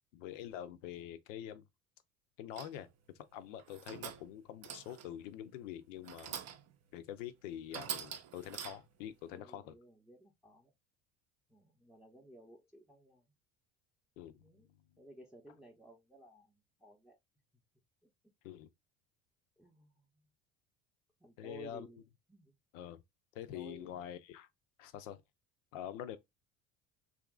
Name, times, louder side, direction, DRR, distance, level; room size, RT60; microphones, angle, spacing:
voice 1, 0.1-1.6 2.4-2.9 3.3-6.4 6.9-9.7 14.2-14.3 18.4-18.7 21.4-21.9 22.7-23.0 23.3-24.5 24.8-25.2 25.7-26.2, left 11 dB, 80° left, 0.6 m, -45 dB
sound 1, 2.6-2.9 3.6-4.3 4.6-5.2 6.0-6.8 7.2-7.3 7.7-9.0, right 9 dB, 45° right, 0.5 m, -45 dB
voice 2, 8.4-8.7 9.3-10.7 11.5-13.3 14.4-14.7 15.0-17.2 19.6-20.1 21.2-22.0 22.3-22.5 23.5-24.1, right 1 dB, ahead, 0.6 m, -56 dB
2.9 x 2.5 x 2.3 m
hypercardioid pair, 70°, 38 cm